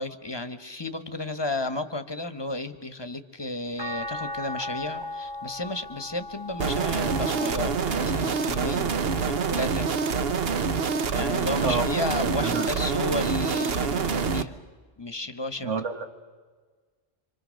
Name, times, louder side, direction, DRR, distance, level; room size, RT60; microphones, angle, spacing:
voice 1, 0.0-8.9 9.2-9.9 11.1-14.6 15.0-15.7, left 2 dB, 20° left, 10 dB, 1.2 m, -33 dB
sound 1, 3.8-10.1 10.7-12.0 13.4-13.5, left 2 dB, 20° right, 1.7 m, -39 dB
sound 2, 6.6-14.4, right 5 dB, 55° right, 1.1 m, -26 dB
voice 2, 12.2-12.7 15.6-16.1, right 4 dB, 70° right, 6 dB, 2.0 m, -29 dB
28.0 x 25.5 x 6.5 m, 1.5 s
omnidirectional pair, 1.3 m